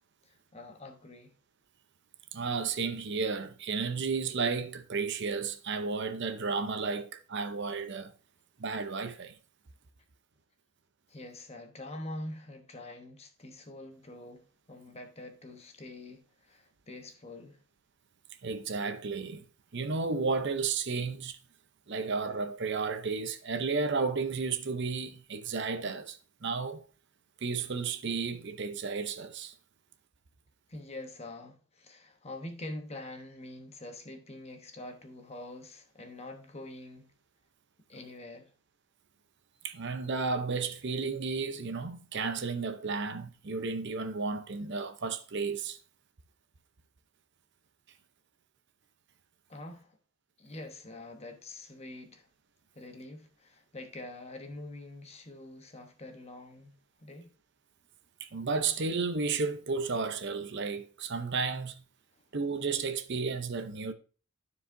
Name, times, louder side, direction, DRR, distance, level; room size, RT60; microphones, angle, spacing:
voice 1, 0.2-1.3 11.1-17.6 30.7-37.1 37.9-38.5 49.5-50.0 50.4-52.3 52.7-56.8 57.0-57.3, left 1 dB, 30° left, 1.0 m, -45 dB
voice 2, 2.3-8.1 8.6-9.4 18.4-19.4 19.7-21.4 21.9-26.8 27.4-29.5 39.6-45.8 58.2-61.8 62.3-63.9, right 4 dB, 55° right, 0.7 m, -33 dB
12.5 x 4.7 x 2.6 m
head